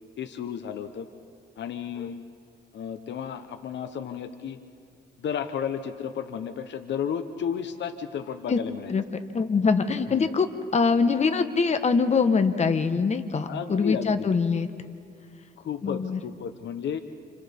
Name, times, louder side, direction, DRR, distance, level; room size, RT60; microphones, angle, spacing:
voice 1, 0.2-1.1 1.6-2.2 2.7-4.6 5.2-8.9 10.1-10.3 13.4-14.3 15.6-17.0, left 8 dB, 65° left, 8 dB, 1.0 m, -33 dB
voice 2, 9.3-10.5 10.7-14.7 15.8-16.2, left 5 dB, 35° left, 8 dB, 1.2 m, -23 dB
30.0 x 28.5 x 3.6 m, 2.3 s
cardioid pair, 90°, 20 cm